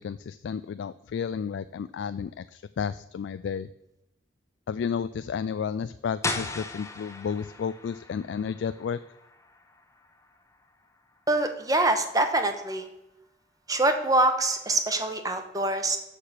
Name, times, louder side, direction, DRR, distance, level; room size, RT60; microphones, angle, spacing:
voice 1, 0.0-3.7 4.7-9.0, left 6 dB, 85° left, 13 dB, 0.3 m, -32 dB
sound 1, 6.2-11.9, left 3 dB, 15° left, 0.7 m, -38 dB
voice 2, 11.3-12.9 13.7-16.0, right 2 dB, 20° right, 7 dB, 0.9 m, -24 dB
6.7 x 6.6 x 5.7 m, 0.88 s
head